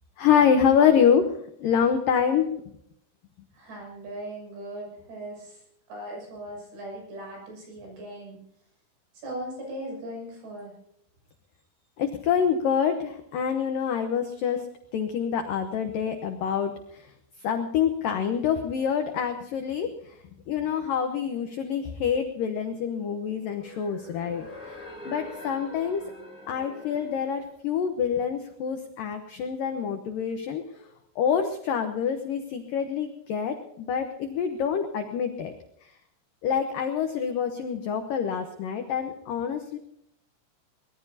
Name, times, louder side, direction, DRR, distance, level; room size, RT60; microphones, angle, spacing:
voice 1, 0.2-1.3 1.6-2.5 12.0-14.7 14.9-17.1 17.4-19.9 20.5-24.8 25.1-26.0 26.5-30.9 31.2-35.5 36.4-39.8, left 7 dB, 75° left, 6 dB, 2.0 m, -26 dB
voice 2, 3.5-5.6 5.9-8.4 9.2-10.7, right 1 dB, 70° right, 0 dB, 9.0 m, -38 dB
sound 1, 23.1-27.5, equal, ahead, 7.4 m, -45 dB
23.5 x 19.5 x 2.8 m, 0.74 s
omnidirectional pair, 5.3 m